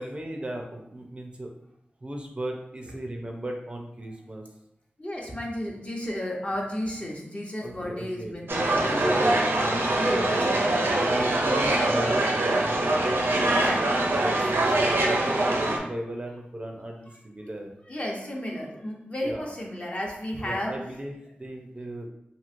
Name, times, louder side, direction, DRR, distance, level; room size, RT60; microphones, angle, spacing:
voice 1, 0.0-1.5 2.0-4.4 7.6-10.5 11.0-12.9 14.1-17.7 19.2-19.5 20.4-21.1 21.4-22.1, right 1 dB, 30° right, 1 dB, 0.4 m, -36 dB
voice 2, 5.0-9.1 10.0-11.0 13.4-14.6 17.9-20.8, left 1 dB, 35° left, -2 dB, 0.7 m, -33 dB
sound 1, 8.5-15.8, right 2 dB, 80° right, 0.5 m, -23 dB
3.0 x 2.7 x 2.5 m, 0.80 s
wide cardioid pair, 60°, 4 cm